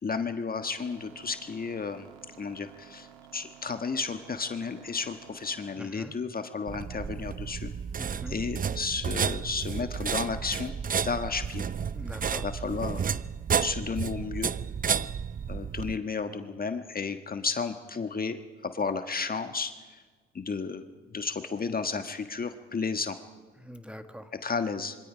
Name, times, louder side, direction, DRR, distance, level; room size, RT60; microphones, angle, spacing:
voice 1, 0.0-2.1 2.4-3.1 3.3-7.7 8.3-10.7 11.0-11.6 12.4-13.1 13.6-14.5 15.5-18.4 18.6-19.7 20.3-20.8 21.1-23.2 24.4-25.0, left 5 dB, 30° left, 8 dB, 1.4 m, -32 dB
sound 1, 0.7-5.7, right 10 dB, 85° right, 1.9 m, -53 dB
voice 2, 5.7-6.2 8.0-8.4 11.9-12.5 23.5-24.3, equal, 5° right, 8 dB, 1.5 m, -43 dB
sound 2, 6.7-16.0, right 7 dB, 30° right, 0.6 m, -31 dB
26.0 x 23.5 x 5.1 m, 1.4 s
hypercardioid pair, 60°, 29 cm